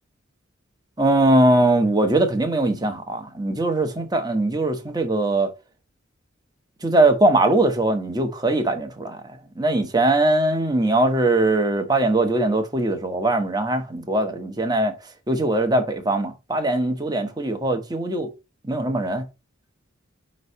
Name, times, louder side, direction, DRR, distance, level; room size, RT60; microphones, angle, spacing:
voice 1, 1.0-5.5 6.8-9.2 9.6-15.0 15.3-18.3 18.6-19.3, right 2 dB, 20° right, 1.0 m, -21 dB
5.4 x 3.2 x 5.4 m
head